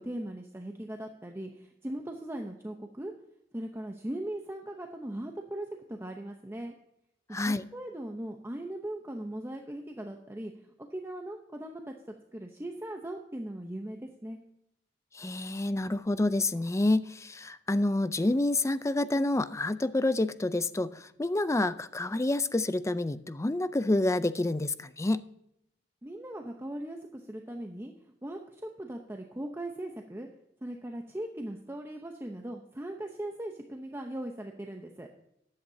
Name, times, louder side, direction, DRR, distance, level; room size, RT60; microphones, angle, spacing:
voice 1, 0.0-3.1 3.5-6.7 7.3-10.5 10.9-14.4 26.0-30.3 30.6-35.1, right 1 dB, 15° right, 3 dB, 0.8 m, -39 dB
voice 2, 7.3-7.6 15.1-25.3, left 2 dB, 15° left, 14 dB, 0.4 m, -28 dB
14.5 x 10.5 x 2.7 m, 0.80 s
head